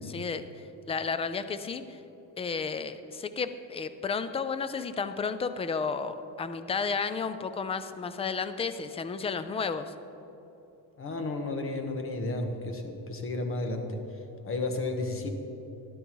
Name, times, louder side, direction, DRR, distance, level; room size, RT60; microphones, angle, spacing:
voice 1, 0.1-0.4 0.9-2.0 2.4-9.9, left 5 dB, 15° left, 11 dB, 0.4 m, -32 dB
voice 2, 11.0-14.0 14.4-15.3, left 2 dB, 35° left, 5 dB, 1.2 m, -32 dB
13.5 x 11.5 x 3.1 m, 3.0 s
cardioid pair, 125°, 39 cm